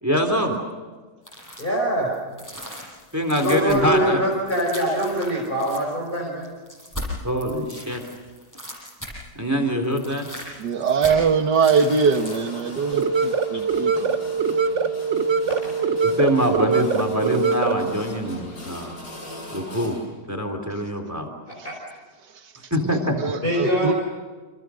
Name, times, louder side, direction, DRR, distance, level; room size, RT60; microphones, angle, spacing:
voice 1, 0.0-0.6 3.1-4.2 7.2-8.0 9.4-10.3 16.0-18.9 19.5-20.0 20.3-21.3 22.7-23.2, equal, 10° right, 5 dB, 3.6 m, -23 dB
Ripping slimy squelching flesh(comp lmtr dns Eq lmtr), 1.3-1.8 2.1-9.4 9.7-12.6 13.0-13.1, equal, 10° left, 8.1 m, -38 dB
voice 2, 1.6-2.2 3.4-6.5 7.7-7.8 15.5-15.7 21.5-21.7 23.4-23.9, right 1 dB, 30° left, -2 dB, 5.3 m, -24 dB
voice 3, 10.6-14.1 23.2-23.9, right 5 dB, 75° right, 6 dB, 2.1 m, -22 dB
sound 1, 11.9-20.0, left 1 dB, 70° left, 8.5 m, -40 dB
sound 2, 12.9-17.9, right 5 dB, 50° right, 1.2 m, -23 dB
30.0 x 27.5 x 6.5 m, 1.4 s
omnidirectional pair, 1.8 m